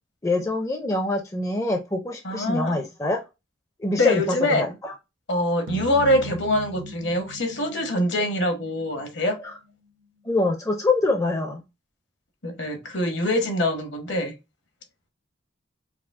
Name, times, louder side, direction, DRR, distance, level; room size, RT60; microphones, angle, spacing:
voice 1, 0.2-3.2 3.8-4.9 10.3-11.6, left 2 dB, 15° left, 0.5 m, -25 dB
voice 2, 2.2-2.8 4.0-4.8 5.3-9.4 12.4-14.3, left 1 dB, 65° left, 1.1 m, -24 dB
sound 1, 5.7-10.1, right 2 dB, 80° right, 0.8 m, -40 dB
4.7 x 2.1 x 3.5 m
head